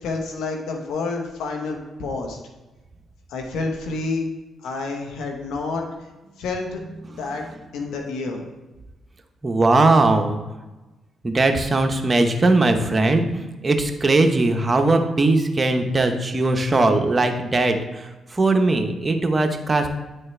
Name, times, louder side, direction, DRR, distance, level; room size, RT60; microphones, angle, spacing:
voice 1, 0.0-2.4 3.3-4.3 4.6-5.8 6.4-6.8 7.1-7.5 7.7-8.4, left 3 dB, 80° left, 2 dB, 1.1 m, -28 dB
voice 2, 9.4-10.4 11.2-19.9, right 2 dB, 30° right, 5 dB, 0.9 m, -20 dB
9.6 x 4.4 x 3.3 m, 1.1 s
supercardioid pair, 55°, 0 cm